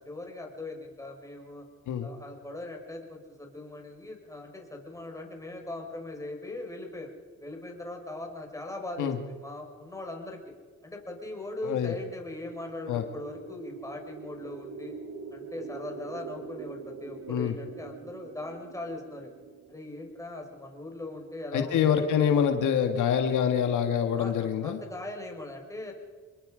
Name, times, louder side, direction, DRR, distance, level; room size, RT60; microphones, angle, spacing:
voice 1, 0.0-1.7 2.0-7.1 7.4-10.4 10.8-14.9 15.3-19.3 19.7-22.1 24.2-25.9, left 2 dB, 10° left, 1 dB, 5.3 m, -40 dB
voice 2, 11.6-11.9 12.9-13.0 17.3-17.5 21.5-24.8, left 8 dB, 80° left, 6 dB, 1.9 m, -25 dB
sound 1, 12.4-20.5, right 5 dB, 70° right, 2.3 m, -44 dB
27.0 x 21.5 x 5.1 m, 1.5 s
cardioid pair, 90°, 30 cm